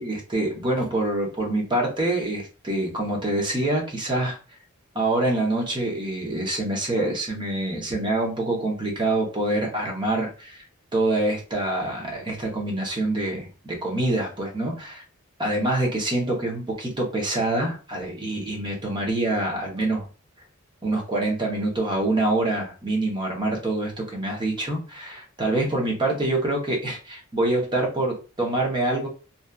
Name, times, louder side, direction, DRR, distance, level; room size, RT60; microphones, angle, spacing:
voice 1, 0.0-4.4 4.9-10.6 10.9-15.0 15.4-20.1 20.8-29.1, right 2 dB, 20° right, -1 dB, 0.7 m, -25 dB
2.7 x 2.3 x 2.3 m, 0.34 s
head